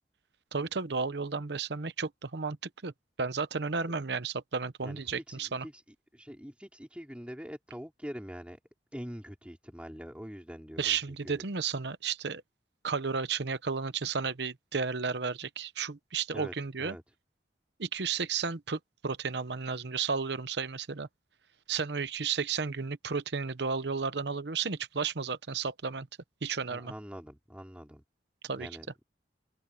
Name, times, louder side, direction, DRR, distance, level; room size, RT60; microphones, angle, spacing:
voice 1, 0.5-2.9 3.2-5.7 10.8-12.4 12.8-16.9 17.8-21.1 21.7-26.1 26.4-26.9 28.4-28.7, right 5 dB, 65° right, 0.9 m, -33 dB
voice 2, 4.8-8.6 8.9-11.4 16.3-17.0 26.7-28.0 28.6-28.9, equal, 5° right, 4.9 m, -44 dB
head